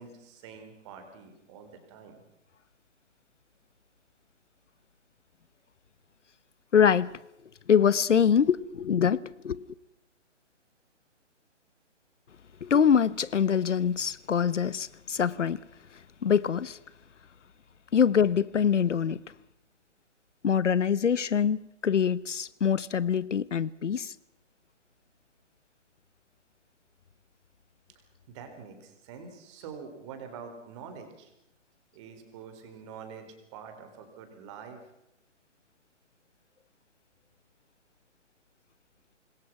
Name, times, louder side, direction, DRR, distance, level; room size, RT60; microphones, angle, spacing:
voice 1, 0.0-2.2 28.3-31.3 31.9-34.8, right 6 dB, 25° right, 3.9 m, -46 dB
voice 2, 6.7-7.2 7.7-9.7 12.6-15.6 16.2-16.8 17.9-19.2 20.4-24.1, left 7 dB, 70° left, 1.0 m, -24 dB
26.5 x 21.0 x 6.0 m
hypercardioid pair, 160°, 37 cm